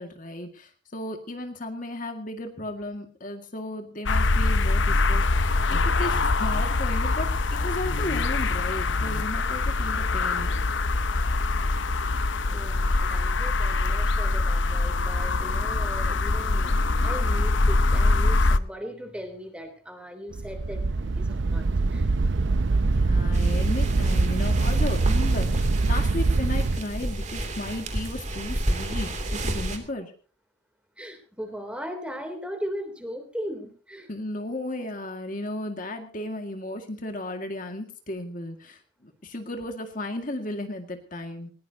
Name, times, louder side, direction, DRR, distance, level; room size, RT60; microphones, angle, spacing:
voice 1, 0.0-10.5 22.9-30.1 34.1-41.5, left 1 dB, 40° left, 4 dB, 2.0 m, -35 dB
sound 1, 4.1-18.6, left 3 dB, 65° left, 0.8 m, -24 dB
voice 2, 12.2-22.1 31.0-34.1, equal, 5° right, 6 dB, 3.2 m, -38 dB
sound 2, 20.3-26.8, right 3 dB, 60° right, 0.6 m, -23 dB
sound 3, 23.3-29.8, right 1 dB, 35° right, 2.9 m, -31 dB
20.5 x 19.5 x 2.9 m, 0.41 s
head